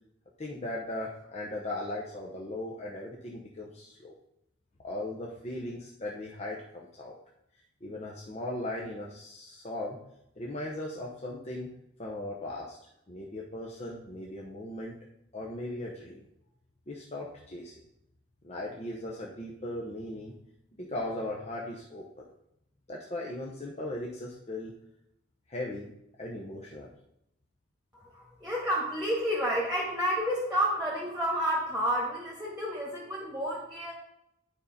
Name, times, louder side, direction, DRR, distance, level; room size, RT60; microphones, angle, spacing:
voice 1, 0.4-4.1 4.8-7.1 7.8-10.0 10.4-11.7 12.0-12.8 13.1-15.0 15.3-16.3 16.9-17.8 18.4-20.3 20.8-22.2 22.9-24.7 25.5-25.9 26.2-26.9, left 1 dB, 30° left, -3 dB, 0.9 m, -38 dB
voice 2, 27.9-33.9, equal, 5° right, -4 dB, 1.6 m, -30 dB
9.6 x 5.2 x 4.2 m, 0.80 s
head